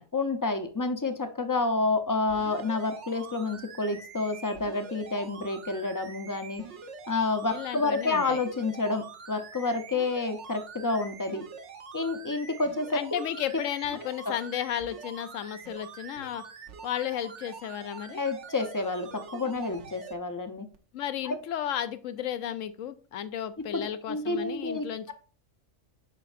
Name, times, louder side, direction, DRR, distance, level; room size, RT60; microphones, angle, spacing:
voice 1, 0.1-6.6 7.1-11.4 11.9-13.2 14.3-14.4 18.1-20.7 21.2-21.4 23.7-25.1, left 3 dB, 25° left, 7 dB, 0.4 m, -29 dB
sound 1, 2.3-20.1 20.7-20.8, right 5 dB, 65° right, 1.1 m, -45 dB
voice 2, 7.5-8.4 12.9-16.4 16.8-18.2 20.9-25.1, left 10 dB, 80° left, 12 dB, 1.0 m, -33 dB
7.5 x 5.3 x 2.5 m, 0.38 s
omnidirectional pair, 1.3 m